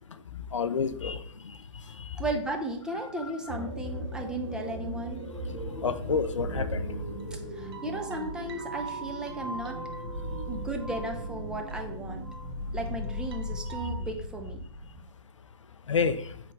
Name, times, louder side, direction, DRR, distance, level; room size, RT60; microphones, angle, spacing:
voice 1, 0.5-1.6 2.0-2.2 5.5-7.0 15.9-16.3, left 5 dB, 80° left, 11 dB, 0.4 m, -29 dB
voice 2, 2.1-5.2 7.3-9.8 10.5-12.3 12.7-14.6, right 2 dB, 5° right, 2 dB, 0.3 m, -35 dB
sound 1, 3.5-15.0, equal, 25° right, 1.9 m, -37 dB
sound 2, 7.0-12.6 12.9-13.9, right 2 dB, 50° right, 0.8 m, -43 dB
4.8 x 3.4 x 3.1 m, 0.67 s
figure-of-eight pair, 125°, 16 cm